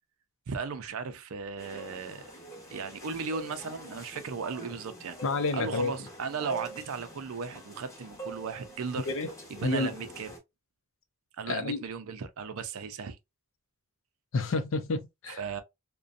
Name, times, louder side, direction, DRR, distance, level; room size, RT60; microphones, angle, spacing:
voice 1, 0.5-2.3 2.7-5.2 5.5-9.1 9.5-10.3 11.4-13.2 15.3-15.6, right 5 dB, 65° right, 0.5 m, -36 dB
sound 1, 1.6-10.4, right 1 dB, 15° left, 0.7 m, -45 dB
voice 2, 5.2-5.9 9.1-9.3 9.6-9.9 11.5-11.8 14.3-15.4, left 3 dB, 60° left, 0.5 m, -29 dB
2.5 x 2.2 x 2.4 m
head